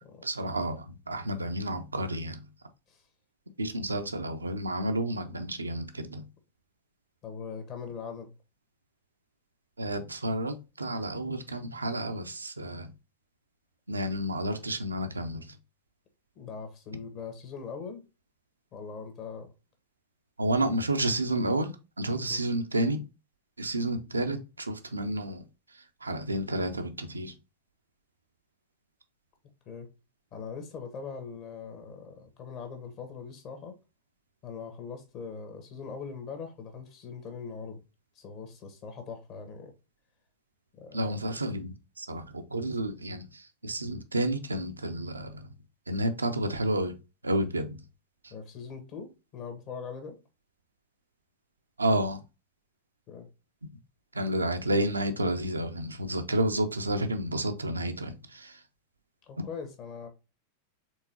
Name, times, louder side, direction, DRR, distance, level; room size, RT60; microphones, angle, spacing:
voice 1, 0.2-2.4 3.6-6.2 9.8-12.9 13.9-15.5 20.4-23.0 23.6-25.4 25.7-27.3 40.9-45.5 45.9-46.9 47.2-47.8 48.2-48.3 51.8-52.2 54.1-58.6, right 1 dB, 80° right, 0.6 m, -30 dB
voice 2, 7.2-8.3 16.3-18.0 18.7-19.5 22.3-22.4 29.6-29.9 30.3-33.7 34.4-37.8 38.1-39.7 40.8-41.1 48.3-50.2 53.1-53.3 59.3-60.1, left 5 dB, 40° left, 1.3 m, -41 dB
4.5 x 3.7 x 2.7 m
figure-of-eight pair, 90°, 0 cm